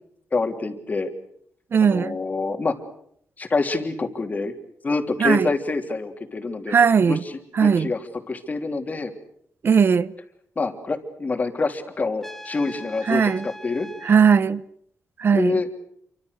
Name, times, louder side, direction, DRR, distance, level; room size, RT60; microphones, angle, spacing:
voice 1, 0.3-1.1 1.8-2.7 3.4-4.5 4.8-6.8 7.0-9.1 10.5-13.9 15.3-15.7, left 3 dB, 30° left, 3.2 m, -26 dB
voice 2, 1.7-2.2 5.2-5.5 6.7-7.2 7.6-7.9 9.6-10.1 13.1-13.4 14.0-14.6 15.2-15.6, right 6 dB, 45° right, 1.0 m, -18 dB
Trumpet, 12.2-14.2, equal, 5° left, 1.2 m, -41 dB
28.5 x 25.0 x 6.6 m
wide cardioid pair, 140°, 5 cm